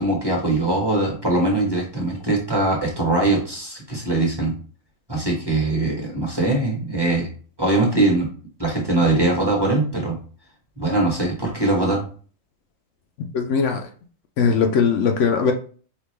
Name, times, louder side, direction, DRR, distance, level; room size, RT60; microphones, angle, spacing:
voice 1, 0.0-4.5 5.1-7.3 7.6-8.3 8.6-10.2 10.8-12.0, right 2 dB, 20° right, -2 dB, 1.1 m, -21 dB
voice 2, 13.2-13.9 14.4-15.5, left 6 dB, 70° left, 4 dB, 0.9 m, -20 dB
5.1 x 2.4 x 3.2 m, 0.41 s
omnidirectional pair, 1.4 m